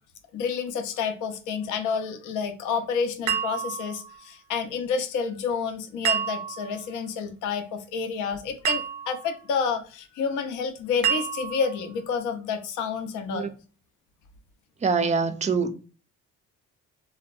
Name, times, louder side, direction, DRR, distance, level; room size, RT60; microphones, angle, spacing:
voice 1, 0.3-13.5, left 6 dB, 85° left, 0.5 m, -29 dB
sound 1, 3.3-4.2 6.0-6.8 8.6-9.3 11.0-11.8, right 8 dB, 90° right, 0.5 m, -28 dB
voice 2, 14.8-15.7, right 5 dB, 25° right, 0.3 m, -24 dB
2.7 x 2.1 x 2.3 m
cardioid pair, 90°, 30 cm